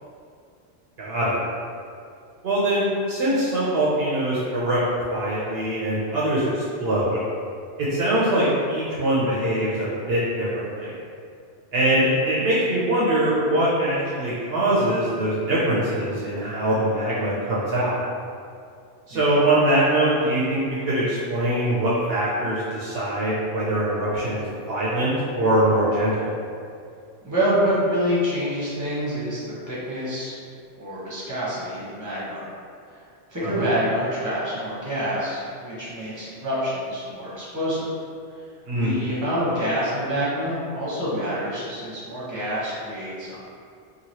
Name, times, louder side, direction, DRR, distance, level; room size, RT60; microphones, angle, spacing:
voice 1, 1.0-1.4 2.4-4.8 5.1-7.2 7.8-10.9 11.7-18.0 19.1-26.4 33.4-33.7 38.7-38.9, right 1 dB, 65° right, -7 dB, 0.8 m, -23 dB
voice 2, 27.2-29.4 29.7-30.3 30.8-32.5 32.9-33.0 33.3-37.9 38.3-38.4 38.7-43.3, equal, 20° right, -9 dB, 0.9 m, -27 dB
3.0 x 2.6 x 2.7 m, 2.4 s
omnidirectional pair, 1.2 m